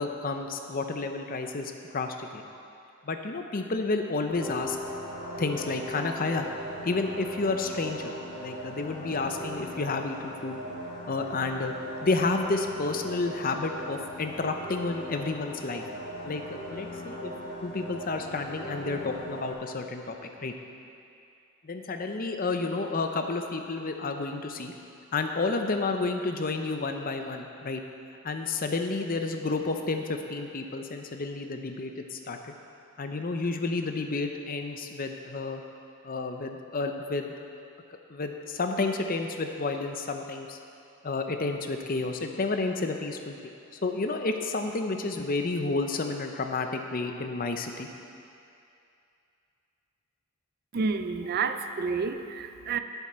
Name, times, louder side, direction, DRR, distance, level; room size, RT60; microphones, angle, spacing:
voice 1, 0.0-2.4 3.0-4.8 5.4-6.5 6.8-10.6 11.1-11.7 12.0-15.8 16.2-16.4 16.7-17.3 17.6-20.1 20.4-20.5 21.6-24.7 25.1-27.8 28.2-32.4 33.0-35.6 36.0-37.3 38.1-40.6 41.0-43.5 43.8-47.9, left 3 dB, 40° left, 5 dB, 0.6 m, -30 dB
sound 1, 4.3-19.5, equal, 75° left, 2.4 m, -39 dB
voice 2, 50.7-52.8, right 5 dB, 45° right, 9 dB, 0.4 m, -29 dB
11.0 x 8.1 x 4.4 m, 2.6 s
head